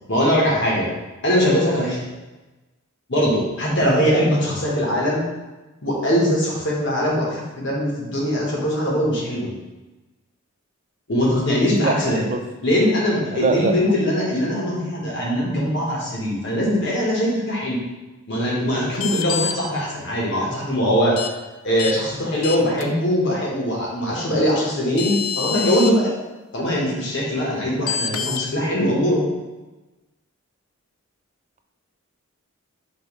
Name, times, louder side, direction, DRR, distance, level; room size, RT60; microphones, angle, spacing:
voice 1, 0.1-0.9 1.2-2.0 3.1-5.2 5.8-9.5 11.1-12.2 12.6-17.8 18.3-21.2 21.6-26.1 26.5-29.2, equal, 55° left, -3 dB, 1.2 m, -21 dB
voice 2, 11.7-12.4 13.3-13.8, right 4 dB, 35° right, 5 dB, 0.3 m, -23 dB
sound 1, 18.9-19.5 21.2-21.3 21.8-21.9 22.4-22.8 24.5-24.6 25.0-25.9 27.9-28.4, left 7 dB, 75° left, 0.4 m, -26 dB
5.0 x 3.1 x 3.1 m, 1.1 s
head